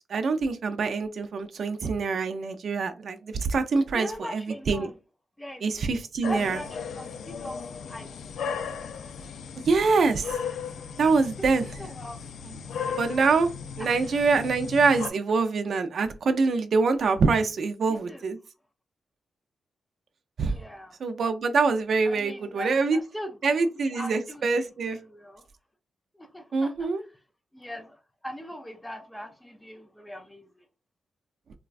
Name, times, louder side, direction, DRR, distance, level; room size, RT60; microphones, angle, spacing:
voice 1, 0.1-4.4 4.7-4.9 5.6-6.6 9.7-10.3 11.0-11.7 13.0-13.5 13.8-18.4 20.4-20.6 21.0-23.0 23.4-25.0 26.5-27.0, right 4 dB, 60° right, 0.4 m, -24 dB
voice 2, 3.9-4.9 5.4-5.7 6.3-7.6 7.9-8.1 8.5-8.9 11.0-11.1 11.4-11.5 11.8-12.2 12.9-13.0 13.8-13.9 17.9-18.3 20.5-21.0 22.0-25.4 26.1-26.9 27.5-28.0 28.2-30.6, equal, 5° left, 0.4 m, -40 dB
sound 1, 6.2-15.1, left 6 dB, 90° left, 0.3 m, -36 dB
4.0 x 2.2 x 2.4 m
wide cardioid pair, 130°, 0 cm